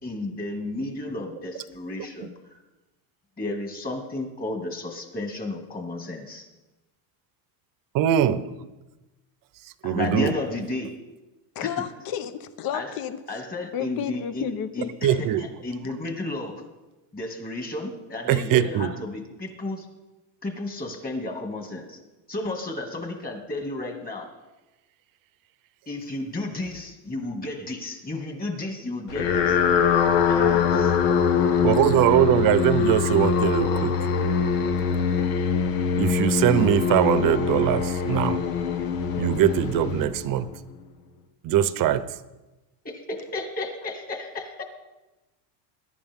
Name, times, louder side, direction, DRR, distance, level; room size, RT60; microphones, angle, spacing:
voice 1, 0.0-2.6 3.4-6.5 9.8-10.9 11.6-11.8 12.7-13.0 13.3-16.6 17.1-19.9 20.4-22.0 22.3-24.3 25.9-29.6 30.3-30.9 42.8-44.6, left 2 dB, 20° left, 3 dB, 2.3 m, -33 dB
voice 2, 7.9-8.4 9.8-10.3 15.0-15.5 18.3-18.9 31.6-34.0 36.0-38.4 39.2-40.5 41.4-42.1, right 11 dB, 45° right, 14 dB, 0.8 m, -21 dB
voice 3, 11.6-13.2 13.7-14.9, left 9 dB, 50° left, 12 dB, 1.1 m, -31 dB
sound 1, 29.1-40.6, left 6 dB, 85° left, 1.6 m, -23 dB
21.0 x 11.5 x 3.7 m, 1.1 s
cardioid pair, 140°, 45 cm